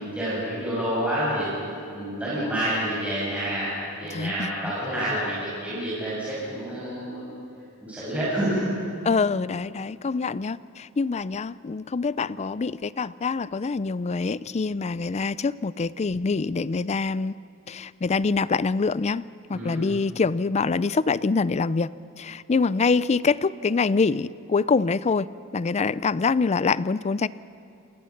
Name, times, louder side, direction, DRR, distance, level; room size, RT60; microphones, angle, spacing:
voice 1, 0.0-1.5 1.9-7.3 7.8-8.7 19.5-19.8, right 1 dB, 5° right, -9 dB, 6.5 m, -28 dB
voice 2, 4.1-4.7 9.1-17.3 17.7-19.2 19.5-21.9 22.2-27.3, left 4 dB, 30° left, 18 dB, 0.4 m, -25 dB
28.5 x 20.5 x 5.9 m, 2.7 s
head